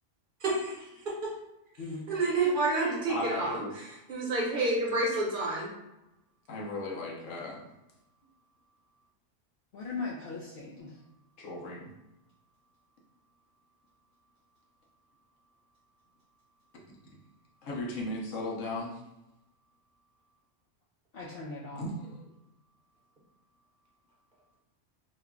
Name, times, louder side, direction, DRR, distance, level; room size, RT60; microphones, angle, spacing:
voice 1, 0.4-1.3 2.1-5.7, right 2 dB, 50° right, -3 dB, 1.0 m, -29 dB
voice 2, 3.1-3.7 6.5-7.6 11.4-11.9 17.6-19.0 21.7-22.3, left 2 dB, 90° left, -2 dB, 1.1 m, -36 dB
voice 3, 9.7-10.9 21.1-21.8, left 3 dB, 55° left, -6 dB, 0.8 m, -38 dB
3.1 x 2.2 x 3.6 m, 0.92 s
omnidirectional pair, 1.3 m